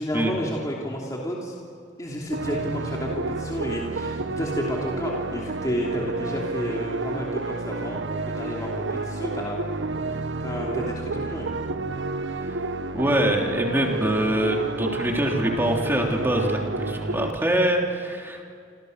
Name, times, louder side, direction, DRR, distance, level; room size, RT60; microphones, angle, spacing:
voice 1, 0.0-1.6 2.0-8.0 8.4-9.6 10.1-10.2 10.4-11.6, equal, 20° left, -3 dB, 3.0 m, -31 dB
sound 1, 2.3-17.3, right 3 dB, 80° right, 1.0 m, -30 dB
voice 2, 12.9-18.4, right 1 dB, 10° right, 0 dB, 3.5 m, -24 dB
28.0 x 27.0 x 6.8 m, 2.4 s
head